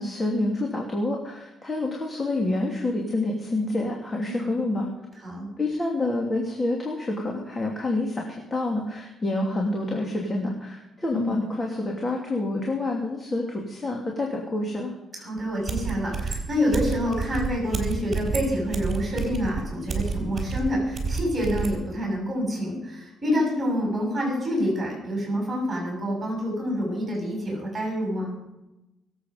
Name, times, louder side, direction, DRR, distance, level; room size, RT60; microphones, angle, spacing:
voice 1, 0.0-4.9 5.6-14.9, left 2 dB, 25° left, -1 dB, 2.8 m, -28 dB
voice 2, 15.2-28.3, equal, 25° right, -1 dB, 7.1 m, -27 dB
sound 1, 15.7-21.8, right 5 dB, 40° right, 4.1 m, -29 dB
23.5 x 8.2 x 5.3 m, 0.98 s
cardioid pair, 90°, 0 cm